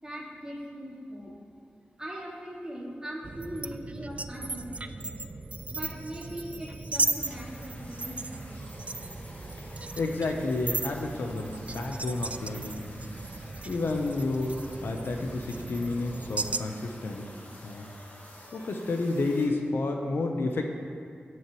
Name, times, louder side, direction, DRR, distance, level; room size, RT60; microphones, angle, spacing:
voice 1, 0.0-1.3 2.0-5.2 5.7-8.6, equal, 20° right, -5 dB, 2.4 m, -40 dB
sound 1, 3.2-16.6, right 3 dB, 35° right, 0.3 m, -36 dB
sound 2, 5.5-19.5, left 1 dB, 50° left, 1.6 m, -50 dB
voice 2, 10.0-12.8 13.6-17.3 17.6-17.9 18.5-20.7, left 2 dB, 85° left, 3 dB, 0.8 m, -30 dB
17.0 x 6.2 x 3.1 m, 2.3 s
wide cardioid pair, 95°, 4 cm